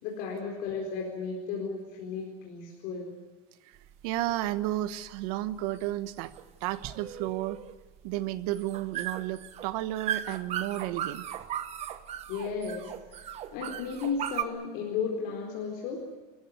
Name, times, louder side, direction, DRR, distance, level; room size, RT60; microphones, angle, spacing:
voice 1, 0.0-3.1 12.3-16.1, left 5 dB, 55° left, -1 dB, 4.4 m, -34 dB
sound 1, 3.7-14.4, right 10 dB, 35° right, 1.1 m, -37 dB
voice 2, 4.0-6.3 6.6-7.6 8.0-11.3, right 15 dB, 75° right, 13 dB, 1.2 m, -32 dB
28.0 x 15.0 x 9.8 m, 1.2 s
cardioid pair, 165°, 19 cm